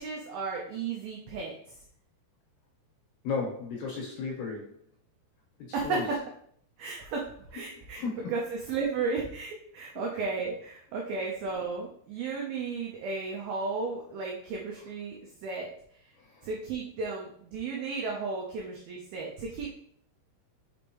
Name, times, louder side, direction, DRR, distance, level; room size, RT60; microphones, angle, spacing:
voice 1, 0.0-1.8 5.7-6.0 6.8-7.3 7.5-8.0 8.3-15.7 16.4-19.8, right 4 dB, 85° right, -1 dB, 2.1 m, -34 dB
voice 2, 3.2-4.7 5.7-6.0 8.0-8.2 10.1-10.3 16.2-16.5, left 4 dB, 70° left, -2 dB, 2.9 m, -34 dB
6.2 x 5.1 x 3.0 m, 0.64 s
omnidirectional pair, 5.3 m